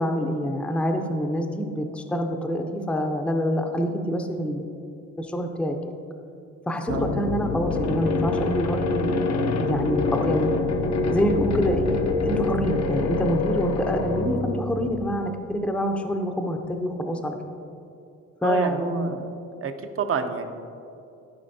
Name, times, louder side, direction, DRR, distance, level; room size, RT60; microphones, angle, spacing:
voice 1, 0.0-4.6 5.2-5.9 6.7-9.1 9.6-10.6 11.1-17.4 18.4-19.1, equal, 5° left, 4 dB, 0.6 m, -26 dB
sound 1, 6.9-15.2, left 3 dB, 60° left, 0.7 m, -26 dB
voice 2, 6.9-7.2 18.4-19.3 19.6-20.5, right 6 dB, 50° right, 7 dB, 0.7 m, -29 dB
13.5 x 5.1 x 2.7 m, 2.6 s
cardioid pair, 90°, 30 cm